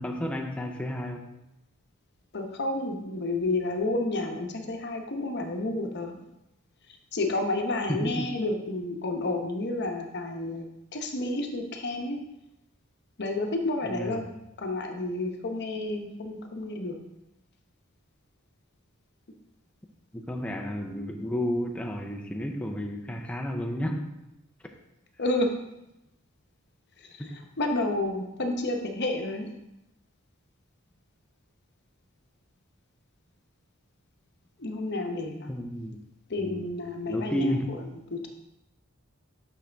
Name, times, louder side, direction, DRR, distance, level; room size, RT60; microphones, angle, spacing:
voice 1, 0.0-1.4 7.9-8.3 13.8-14.3 20.1-24.2 27.2-27.3 35.5-36.0 36.4-36.6 37.1-37.7, equal, 5° left, 1 dB, 0.5 m, -32 dB
voice 2, 2.3-6.2 7.1-10.7 10.9-12.2 13.2-14.3 14.6-17.0 25.2-25.5 27.0-29.5 34.6-35.6 36.3-37.5 38.1-38.3, left 2 dB, 55° left, 4 dB, 0.9 m, -30 dB
6.3 x 6.2 x 3.4 m, 0.89 s
head